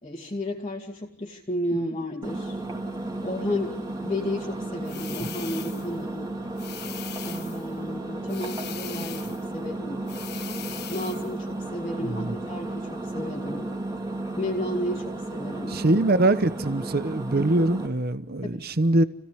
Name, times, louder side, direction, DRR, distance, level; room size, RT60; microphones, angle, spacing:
voice 1, 0.0-2.6 3.2-6.3 7.2-10.1 10.9-13.7 14.4-15.8 18.4-18.7, left 1 dB, 25° left, 2.5 m, -33 dB
Engine, 2.2-17.9, right 2 dB, 15° right, 3.0 m, -33 dB
sound 1, 4.8-6.0 6.6-7.7 8.3-9.5 10.1-11.3, left 12 dB, 45° left, 1.3 m, -40 dB
voice 2, 12.0-12.3 15.7-19.0, right 2 dB, 45° right, 0.9 m, -23 dB
29.5 x 17.0 x 9.9 m
head